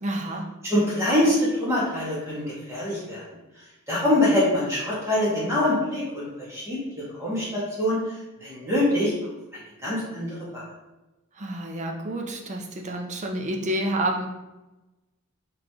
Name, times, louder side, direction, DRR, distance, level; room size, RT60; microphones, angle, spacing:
voice 1, 0.0-0.5 11.4-14.2, right 1 dB, 35° right, 2 dB, 0.5 m, -29 dB
voice 2, 0.6-3.2 3.9-6.8 7.1-8.0 8.4-9.1 9.8-10.6, left 1 dB, 15° right, -7 dB, 1.4 m, -24 dB
4.0 x 3.2 x 2.9 m, 1.0 s
head